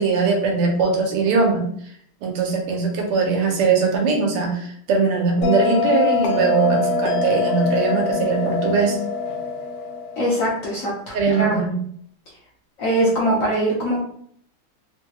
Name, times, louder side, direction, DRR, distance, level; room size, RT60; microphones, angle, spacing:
voice 1, 0.0-1.7 2.2-9.0 11.1-11.7, right 4 dB, 85° right, 1 dB, 1.8 m, -20 dB
Bell, 5.4-10.5, left 5 dB, 85° left, 1.5 m, -23 dB
voice 2, 10.2-11.6 12.8-14.0, right 1 dB, 65° left, -5 dB, 0.8 m, -22 dB
4.0 x 2.3 x 2.8 m, 0.65 s
omnidirectional pair, 2.4 m